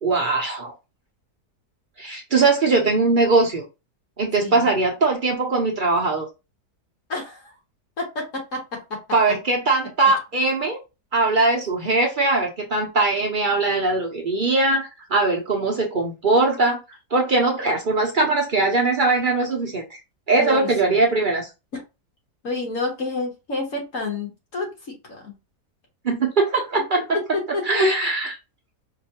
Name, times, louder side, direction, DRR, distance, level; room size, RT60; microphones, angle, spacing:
voice 1, 0.0-0.7 2.0-3.6 4.2-6.3 9.1-10.8 11.1-16.8 17.1-20.0 20.3-21.5 26.0-27.0 27.7-28.4, right 3 dB, 50° right, 1 dB, 0.6 m, -21 dB
voice 2, 4.4-4.8 7.1-7.6 8.0-9.0 9.3-9.4 20.4-21.0 21.7-21.8 22.4-25.4 27.1-27.9, left 3 dB, 55° left, 0 dB, 1.6 m, -29 dB
4.9 x 2.3 x 2.8 m, 0.27 s
omnidirectional pair, 1.7 m